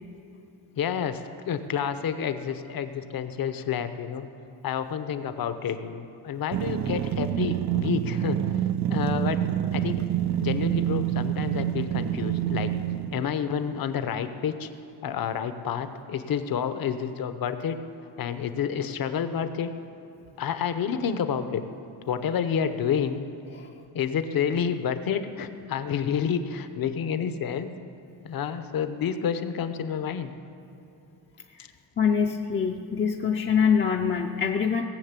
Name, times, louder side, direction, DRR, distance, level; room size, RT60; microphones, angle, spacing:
voice 1, 0.8-4.3 4.6-8.4 8.9-9.4 9.7-10.0 10.4-12.7 13.1-14.7 15.0-17.8 18.2-19.7 20.4-21.6 22.1-23.2 23.9-27.7 28.2-30.3 31.6-31.7, left 7 dB, 55° left, 10 dB, 0.8 m, -29 dB
sound 1, 6.5-13.3, right 11 dB, 45° right, 0.4 m, -27 dB
voice 2, 32.0-34.8, left 6 dB, 30° left, 1 dB, 0.5 m, -24 dB
18.0 x 6.5 x 8.2 m, 2.8 s
wide cardioid pair, 155°, 41 cm